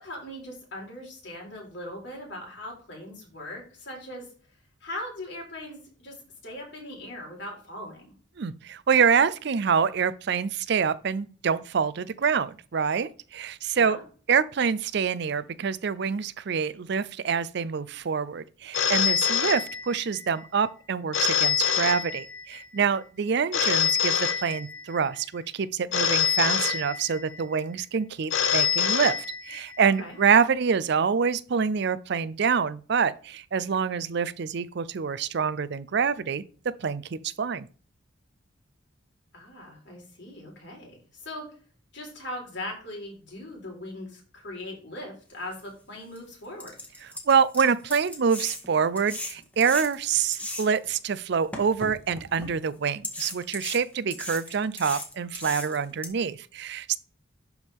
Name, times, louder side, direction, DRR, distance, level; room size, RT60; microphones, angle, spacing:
voice 1, 0.0-4.3 4.8-6.2 6.4-8.1 13.7-14.0 30.0-30.2 39.3-41.5 41.9-46.7, left 1 dB, 60° left, 4.1 m, -40 dB
voice 2, 8.4-14.0 14.3-29.2 29.4-37.7 47.0-57.0, right 6 dB, 60° right, 0.5 m, -26 dB
Telephone, 18.7-20.2 21.1-22.6 23.5-25.0 25.9-27.4 28.3-29.8, left 7 dB, 85° left, 0.8 m, -25 dB
sound 1, 45.6-45.7 46.2-46.3 46.6-50.9 51.5-52.5 53.0-56.1, left 1 dB, 5° left, 1.7 m, -37 dB
11.5 x 4.7 x 3.5 m
head